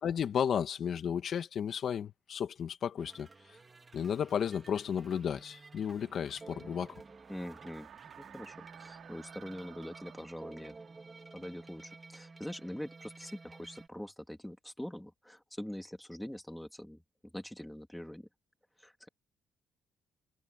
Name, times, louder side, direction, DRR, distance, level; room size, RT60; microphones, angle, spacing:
voice 1, 0.0-3.3 3.9-6.9, left 8 dB, 60° left, 1.9 m, -33 dB
sound 1, 3.0-13.9, right 3 dB, 25° right, 3.7 m, -53 dB
sound 2, 4.0-12.8, right 10 dB, 70° right, 4.0 m, -57 dB
voice 2, 7.3-7.9 8.2-10.7 11.3-17.0 17.3-18.3 18.8-19.1, left 1 dB, 5° left, 2.8 m, -44 dB
cardioid pair, 90°, 0 cm